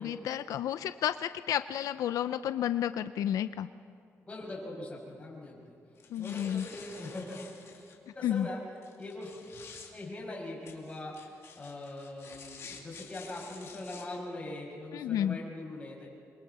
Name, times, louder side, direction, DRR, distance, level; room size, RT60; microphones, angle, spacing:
voice 1, 0.0-3.7 6.1-6.7 8.2-8.5 14.9-15.4, left 10 dB, 90° left, 12 dB, 0.5 m, -31 dB
voice 2, 4.3-5.8 6.2-7.4 8.1-9.3 9.9-16.1, left 1 dB, 20° left, -3 dB, 6.5 m, -42 dB
sound 1, 6.0-8.0 8.8-9.9 10.7-14.0, left 5 dB, 55° left, 2.8 m, -50 dB
28.0 x 23.5 x 4.2 m, 2.5 s
cardioid pair, 140°, 6 cm